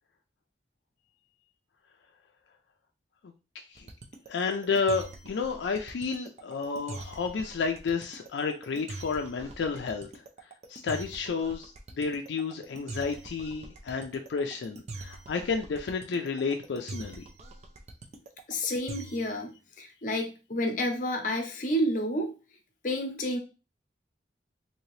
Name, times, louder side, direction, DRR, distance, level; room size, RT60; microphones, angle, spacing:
sound 1, 3.8-19.4, right 3 dB, 40° right, 0.4 m, -43 dB
voice 1, 4.3-10.1 10.7-17.3, left 5 dB, 80° left, 4 dB, 0.4 m, -31 dB
voice 2, 18.5-22.3 22.8-23.4, equal, 45° left, 4 dB, 0.7 m, -30 dB
2.8 x 2.8 x 3.1 m, 0.32 s
head